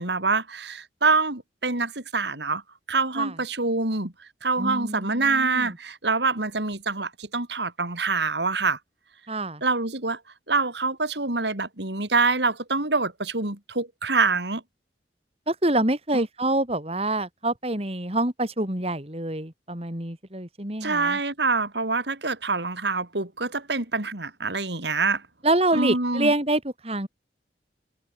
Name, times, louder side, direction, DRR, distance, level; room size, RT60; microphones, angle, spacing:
voice 1, 0.0-2.6 2.9-8.8 9.6-10.2 10.5-14.6 16.1-16.3 20.8-25.2 25.7-26.3, right 3 dB, 75° right, 3.6 m, -25 dB
voice 2, 4.6-5.7 9.3-9.6 15.5-21.2 25.4-27.1, right 1 dB, 35° right, 3.5 m, -26 dB
head